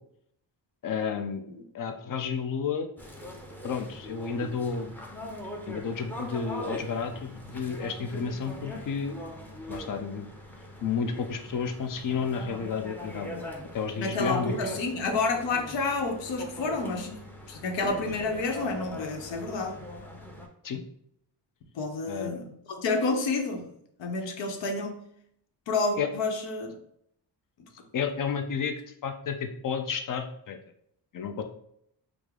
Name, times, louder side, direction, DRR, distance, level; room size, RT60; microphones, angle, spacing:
voice 1, 0.8-1.4 1.7-2.9 3.6-4.9 5.7-9.2 9.7-10.3 10.8-13.5 13.7-14.5 20.6-20.8 22.1-22.4 26.0-26.1 27.9-28.7 29.0-30.6 31.1-31.4, left 6 dB, 50° left, 6 dB, 0.6 m, -31 dB
sound 1, 3.0-20.5, equal, 5° left, 0.5 m, -41 dB
voice 2, 14.0-17.1 17.5-19.8 21.7-23.7 24.0-25.0 25.7-26.7 27.6-27.7, left 3 dB, 85° left, 4 dB, 0.8 m, -29 dB
4.7 x 2.0 x 3.6 m, 0.71 s
cardioid pair, 120°, 43 cm